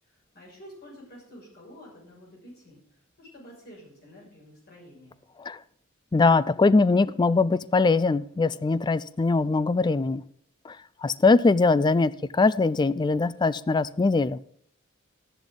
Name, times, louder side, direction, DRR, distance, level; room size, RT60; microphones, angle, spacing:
voice 1, 0.0-2.8 3.2-5.2, equal, 50° left, 6.3 m, -49 dB
voice 2, 6.1-10.2 10.7-10.8 11.0-14.4, left 3 dB, 20° left, 0.3 m, -22 dB
13.0 x 10.5 x 3.9 m
head